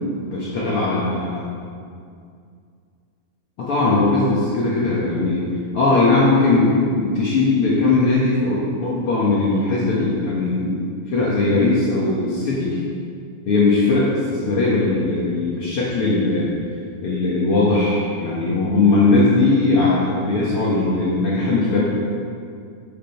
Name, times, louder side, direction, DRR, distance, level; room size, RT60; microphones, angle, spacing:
voice 1, 0.3-1.4 3.6-5.4 5.7-12.8 13.5-16.5 17.0-21.8, left 3 dB, 55° left, -6 dB, 1.8 m, -19 dB
7.5 x 7.4 x 5.7 m, 2.3 s
omnidirectional pair, 3.6 m